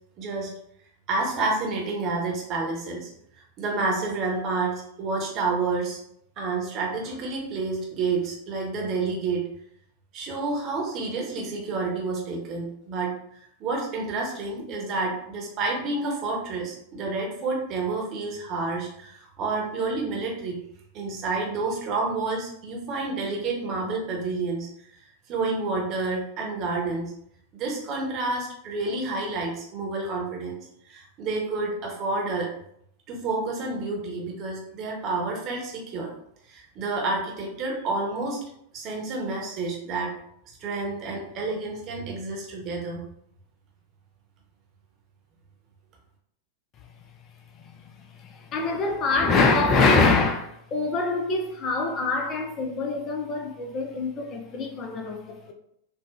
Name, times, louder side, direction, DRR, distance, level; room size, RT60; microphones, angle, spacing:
voice 1, 0.2-0.5 1.1-3.1 3.6-6.0 6.4-9.4 10.1-13.1 13.6-20.6 20.9-24.7 25.3-27.1 27.5-30.6 30.9-32.5 33.1-36.1 36.5-38.4 38.7-40.1 40.6-43.0, right 3 dB, 35° right, 0.9 m, -29 dB
voice 2, 48.2-55.5, left 3 dB, 30° left, 0.4 m, -24 dB
3.9 x 2.1 x 2.3 m
figure-of-eight pair, 90°, 0 cm